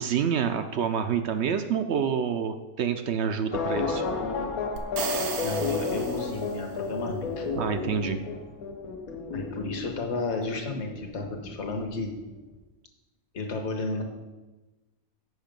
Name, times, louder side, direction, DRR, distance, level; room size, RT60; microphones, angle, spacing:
voice 1, 0.0-4.0 7.6-8.2, right 7 dB, 65° right, 8 dB, 0.6 m, -27 dB
sound 1, 3.5-12.0 12.3-12.4, left 4 dB, 75° left, 1.4 m, -32 dB
sound 2, 4.8-6.8, right 6 dB, 85° right, 1.3 m, -35 dB
voice 2, 5.0-7.5 9.3-12.1 13.3-14.0, left 3 dB, 50° left, 2 dB, 1.3 m, -33 dB
8.0 x 5.7 x 5.2 m, 1.1 s
omnidirectional pair, 1.5 m